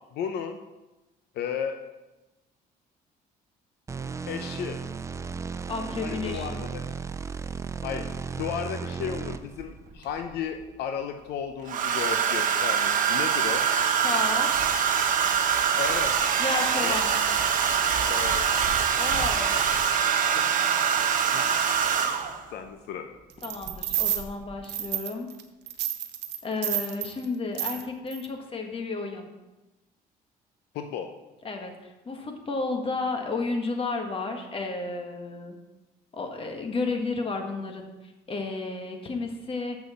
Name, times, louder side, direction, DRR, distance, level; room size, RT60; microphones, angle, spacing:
voice 1, 0.1-0.6 1.3-1.8 4.3-4.8 6.0-6.8 7.8-8.1 8.4-13.6 15.8-16.1 16.5-17.0 18.1-18.4 20.3-20.4 21.3-21.4 22.5-23.1 30.7-31.1, left 7 dB, 75° left, 6 dB, 0.7 m, -34 dB
sound 1, 3.9-9.6, right 5 dB, 15° right, 0.4 m, -35 dB
voice 2, 5.7-6.6 14.0-14.5 16.4-17.2 19.0-19.5 23.4-25.3 26.4-29.3 31.4-35.6 36.1-39.8, left 3 dB, 35° left, 4 dB, 1.5 m, -32 dB
Domestic sounds home sounds, 9.6-10.2 11.7-22.4 23.7-23.9 24.2-24.5, right 7 dB, 50° right, 1.1 m, -24 dB
sound 2, 23.4-24.2 24.7-25.4 25.7-27.1 27.5-27.8 28.1-28.3, right 13 dB, 85° right, 0.8 m, -30 dB
7.1 x 6.4 x 6.9 m, 1.1 s
cardioid pair, 110°, 17 cm